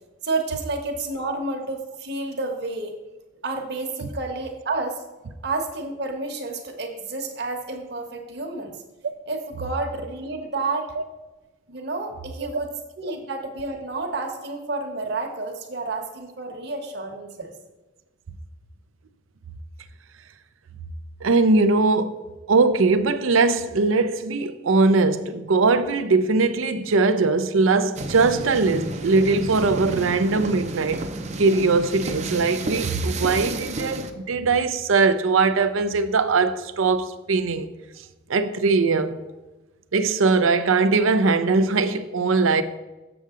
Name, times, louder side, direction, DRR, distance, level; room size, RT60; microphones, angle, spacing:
voice 1, 0.2-3.0 3.4-5.0 5.4-8.8 9.3-11.0 11.7-17.5, right 3 dB, 55° right, 1.2 m, -30 dB
voice 2, 21.2-22.1 22.5-31.0 31.4-37.7 38.3-39.2 39.9-42.6, right 3 dB, 90° right, 0.6 m, -20 dB
sound 1, 28.0-34.1, right 2 dB, 35° right, 0.5 m, -32 dB
7.4 x 6.9 x 3.7 m
head